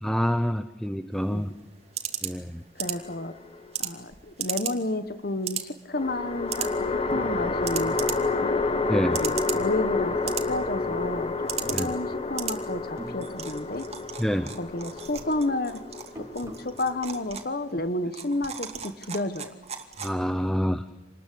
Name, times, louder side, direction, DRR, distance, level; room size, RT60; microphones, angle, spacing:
voice 1, 0.0-1.5 2.2-2.6 8.9-9.2 11.7-11.9 14.2-14.5 20.0-20.8, equal, 5° left, 10 dB, 0.8 m, -27 dB
sound 1, 1.1-20.5, right 9 dB, 35° right, 2.6 m, -38 dB
voice 2, 2.7-3.3 3.8-8.6 9.1-13.9 14.6-15.8 16.2-19.5, left 2 dB, 50° left, 11 dB, 1.3 m, -31 dB
sound 2, 2.8-3.7 5.9-17.3, left 3 dB, 30° left, 1.6 m, -30 dB
sound 3, 7.1-10.0 10.3-11.1 11.6-12.5 12.7-14.1 14.3-16.8, equal, 15° right, 2.8 m, -46 dB
27.5 x 20.5 x 8.5 m, 1.1 s
head